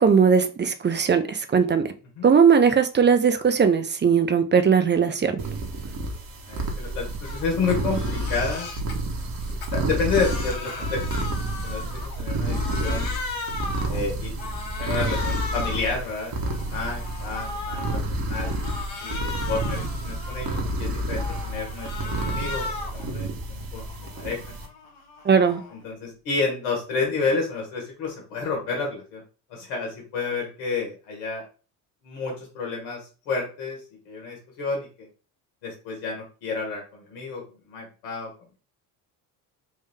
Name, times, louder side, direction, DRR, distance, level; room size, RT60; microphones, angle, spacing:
voice 1, 0.0-1.8 2.2-5.3 25.3-25.6, right 6 dB, 25° right, 9 dB, 0.6 m, -19 dB
sound 1, 5.4-24.7, right 1 dB, 50° right, 1.3 m, -30 dB
voice 2, 6.5-8.7 9.5-13.1 13.8-14.3 14.8-18.6 19.0-24.6 25.7-29.2 29.5-31.5 32.0-33.8 34.0-35.1 35.6-38.3, left 4 dB, 80° left, 1 dB, 1.5 m, -30 dB
Crying sobbing, 7.2-7.4 7.8-9.0 9.4-12.2 12.5-14.0 14.4-15.9 16.3-18.0 18.4-20.7 21.1-23.0 23.4-25.8, left 3 dB, 60° left, 1.3 m, -36 dB
3.8 x 2.6 x 3.5 m, 0.34 s
hypercardioid pair, 65°, 46 cm